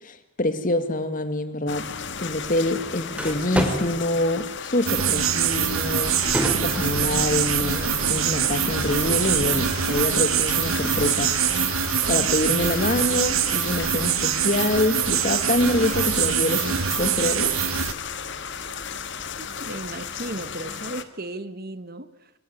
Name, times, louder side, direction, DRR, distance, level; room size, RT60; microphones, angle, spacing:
voice 1, 0.0-1.9 2.2-6.2 6.5-11.4 12.1-17.6, left 1 dB, 40° left, 2.2 m, -25 dB
sound 1, 1.7-21.0, left 5 dB, 55° left, 1.7 m, -34 dB
sound 2, 2.2-20.8, equal, 5° right, 4.0 m, -37 dB
sound 3, 4.9-17.9, right 9 dB, 75° right, 1.5 m, -24 dB
voice 2, 19.4-22.3, right 1 dB, 45° right, 1.5 m, -35 dB
25.5 x 23.0 x 9.6 m
head